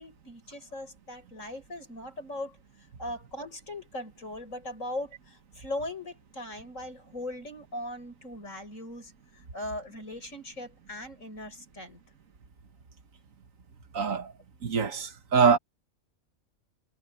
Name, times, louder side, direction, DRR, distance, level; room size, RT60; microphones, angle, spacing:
voice 1, 0.0-12.0, left 1 dB, 65° left, 8.1 m, -39 dB
voice 2, 13.9-14.3 14.6-15.6, right 5 dB, 70° right, 1.9 m, -24 dB
omnidirectional pair, 1.4 m